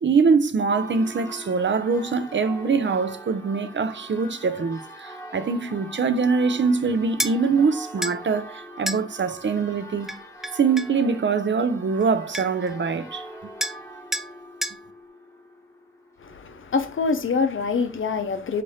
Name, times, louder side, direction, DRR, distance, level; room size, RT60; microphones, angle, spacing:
voice 1, 0.0-10.1 10.5-13.3, right 5 dB, 65° right, 0.4 m, -23 dB
Church bell, 0.7-16.4, right 1 dB, 15° left, 1.0 m, -42 dB
sound 1, 7.2-7.4 8.0-8.2 8.9-9.0 10.1-11.0 12.0-12.1 12.3-12.7 13.6-13.8 14.1-14.3 14.6-14.8, equal, ahead, 0.3 m, -29 dB
voice 2, 16.2-18.6, left 4 dB, 75° left, 0.5 m, -25 dB
4.0 x 2.5 x 3.2 m
wide cardioid pair, 45°, 21 cm